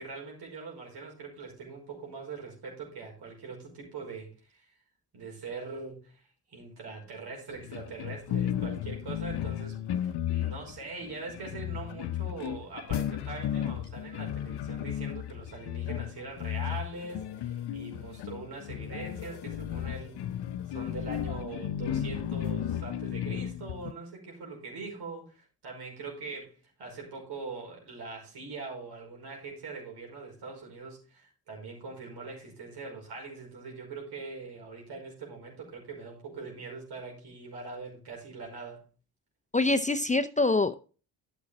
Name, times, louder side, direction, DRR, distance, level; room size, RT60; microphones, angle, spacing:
voice 1, 0.0-4.7 5.1-6.2 6.5-20.3 20.7-38.9, right 4 dB, 70° right, 0 dB, 5.3 m, -42 dB
sound 1, 7.5-23.9, left 10 dB, 70° left, 0.7 m, -34 dB
voice 2, 39.5-40.7, left 2 dB, 20° left, 11 dB, 0.6 m, -25 dB
10.5 x 7.2 x 4.1 m, 0.36 s
supercardioid pair, 65°, 41 cm